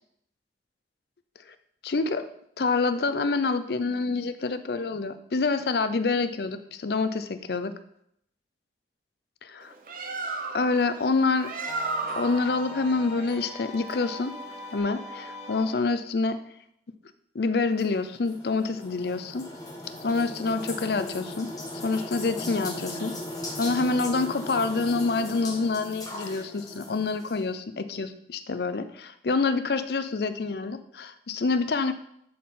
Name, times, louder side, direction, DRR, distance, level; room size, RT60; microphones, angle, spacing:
voice 1, 1.8-2.3 2.6-7.7 9.5-9.7 10.5-11.5 12.1-14.3 14.7-16.4 17.3-19.5 20.0-21.5 21.8-23.2 23.6-31.9, left 3 dB, 55° left, 10 dB, 0.5 m, -27 dB
Bird, 9.6-14.8, right 3 dB, 45° right, 0.8 m, -35 dB
sound 1, 11.7-15.9, left 1 dB, 5° left, 1.3 m, -41 dB
sound 2, 17.8-27.4, left 1 dB, 20° left, 1.4 m, -38 dB
11.0 x 4.3 x 3.7 m, 0.72 s
head